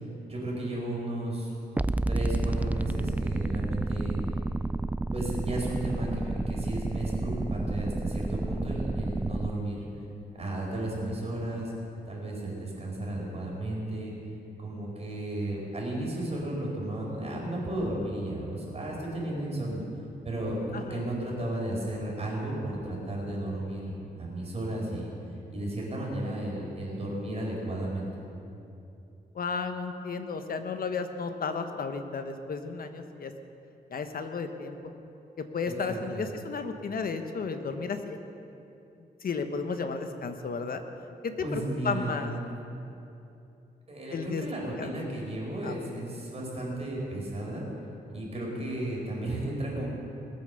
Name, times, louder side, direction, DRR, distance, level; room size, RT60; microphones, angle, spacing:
voice 1, 0.3-1.5 2.1-4.2 5.1-10.1 10.4-11.7 12.1-14.1 14.6-19.8 20.2-23.9 24.2-25.1 25.5-28.1 35.6-36.3 41.4-42.4 43.9-47.6 48.1-49.9, right 1 dB, 35° right, -3 dB, 4.7 m, -34 dB
sound 1, 1.8-9.5, right 2 dB, 10° right, 0.3 m, -30 dB
voice 2, 20.7-21.1 29.3-33.3 33.9-34.9 35.4-38.2 39.2-40.8 41.2-42.3 44.1-44.4 44.8-44.9 45.6-45.8, left 5 dB, 60° left, 7 dB, 1.2 m, -33 dB
20.5 x 8.7 x 7.0 m, 2.8 s
wide cardioid pair, 105°, 17 cm